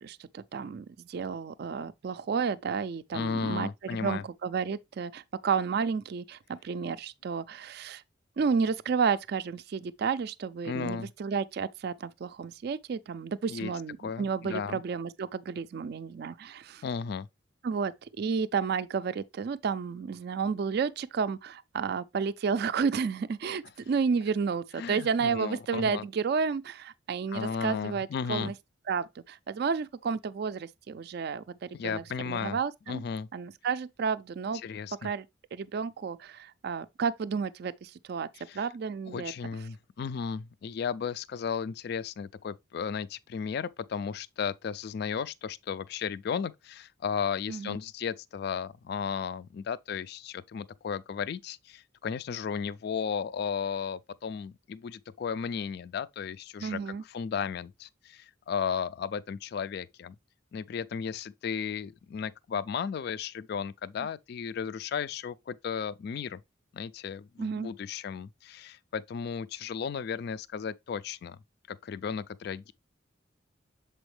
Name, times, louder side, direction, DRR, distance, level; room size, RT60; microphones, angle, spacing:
voice 1, 0.0-8.0 8.4-16.8 17.6-28.5 28.9-33.0 33.3-34.6 35.0-35.3 35.5-38.3 38.5-39.3 47.5-47.8 56.6-57.0 64.0-64.1 67.4-67.7, right 5 dB, 55° right, 0.3 m, -31 dB
voice 2, 3.1-4.2 10.6-11.1 13.5-13.7 14.0-14.8 16.8-17.3 24.8-26.1 27.3-28.5 31.7-32.6 32.9-33.3 34.6-35.1 38.3-38.7 39.1-60.2 60.5-66.4 66.7-71.4 71.7-72.7, left 6 dB, 55° left, 0.3 m, -34 dB
7.0 x 4.4 x 3.2 m
head